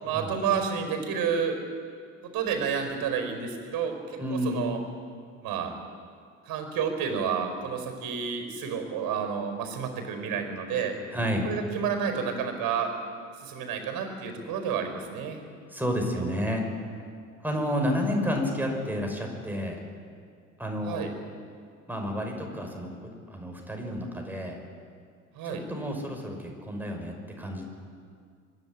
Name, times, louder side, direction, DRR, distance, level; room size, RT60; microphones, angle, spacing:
voice 1, 0.0-1.6 2.2-4.8 5.4-5.7 6.4-11.0 11.4-12.9 13.4-15.4 20.8-21.1 25.3-25.6, right 7 dB, 55° right, 6 dB, 4.7 m, -30 dB
voice 2, 4.2-4.6 11.1-11.5 15.7-16.6 17.4-19.8 20.6-21.0 21.9-24.6 25.4-27.6, equal, 5° right, 1 dB, 5.8 m, -30 dB
24.5 x 11.5 x 10.0 m, 2.1 s
hypercardioid pair, 65°, 41 cm